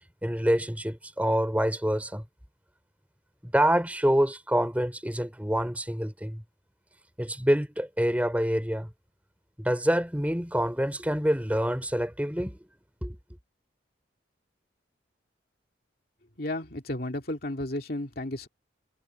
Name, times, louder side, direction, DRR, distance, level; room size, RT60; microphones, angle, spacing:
voice 1, 0.2-2.2 3.4-6.4 7.2-8.9 9.6-12.6 13.0-13.2, equal, 10° right, 4.5 m, -26 dB
voice 2, 16.4-18.5, left 1 dB, 50° left, 2.6 m, -33 dB
head